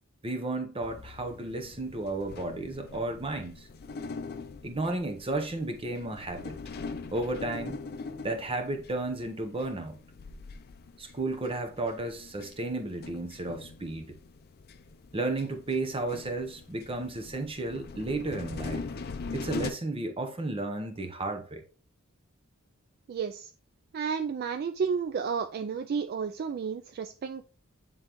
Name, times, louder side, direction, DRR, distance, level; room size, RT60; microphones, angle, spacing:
voice 1, 0.2-3.7 4.6-6.6 7.1-7.8 8.2-10.0 11.0-14.1 15.1-18.9 19.3-21.6, right 2 dB, 25° right, 0.8 m, -33 dB
sound 1, 0.8-19.7, left 4 dB, 50° left, 0.5 m, -42 dB
voice 2, 23.1-23.5 23.9-27.5, right 6 dB, 45° right, 0.3 m, -32 dB
8.7 x 3.8 x 3.0 m
head